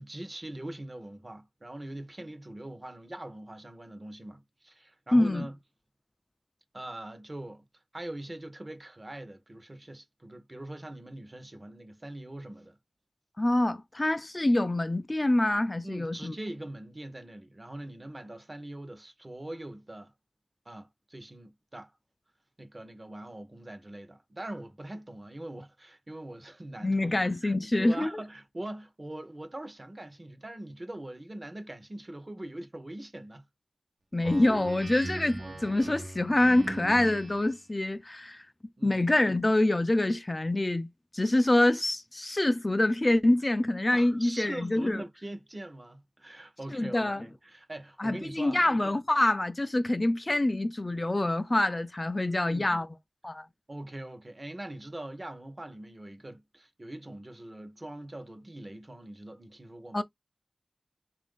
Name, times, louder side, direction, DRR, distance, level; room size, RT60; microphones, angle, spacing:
voice 1, 0.0-5.6 6.7-7.6 7.9-12.8 15.8-20.1 20.7-21.9 22.6-33.4 38.8-39.0 43.9-48.6 52.2-52.8 53.7-60.0, right 1 dB, 40° right, 0.7 m, -42 dB
voice 2, 5.1-5.5 13.4-16.3 26.8-28.1 34.1-38.4 38.8-45.0 46.7-47.2 48.0-52.9 53.2-53.5 59.9-60.0, left 1 dB, 35° left, 0.3 m, -26 dB
Speech synthesizer, 34.2-37.6, right 2 dB, 75° right, 0.8 m, -39 dB
3.0 x 2.5 x 3.6 m
wide cardioid pair, 70°, 0 cm